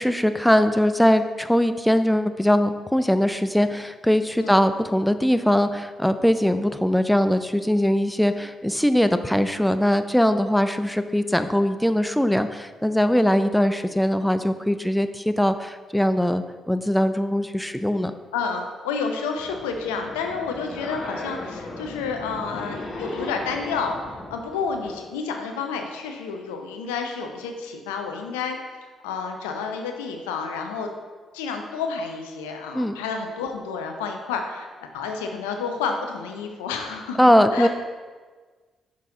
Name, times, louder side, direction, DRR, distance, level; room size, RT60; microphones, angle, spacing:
voice 1, 0.0-18.1 32.7-33.0 37.2-37.7, equal, 5° left, 10 dB, 0.4 m, -21 dB
voice 2, 18.3-30.9 31.3-34.7 34.9-37.2 37.5-37.7, left 5 dB, 85° left, 4 dB, 0.5 m, -30 dB
sound 1, 19.4-25.0, left 2 dB, 55° left, 1.4 m, -37 dB
5.9 x 5.6 x 3.7 m, 1.4 s
hypercardioid pair, 45°, 0 cm